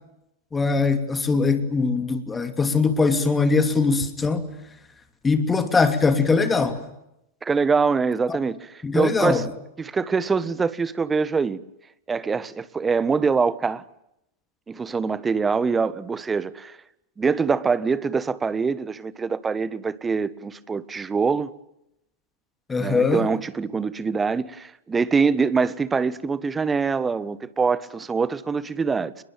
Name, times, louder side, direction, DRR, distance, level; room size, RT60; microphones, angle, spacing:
voice 1, 0.5-4.5 5.2-6.8 8.3-8.4 8.8-9.4 22.7-23.3, left 4 dB, 15° left, 2.8 m, -21 dB
voice 2, 7.4-9.5 9.8-11.6 12.1-13.8 14.7-16.8 17.2-21.5 22.8-29.1, right 5 dB, 15° right, 1.5 m, -24 dB
28.5 x 22.0 x 9.1 m
figure-of-eight pair, 90°, 0 cm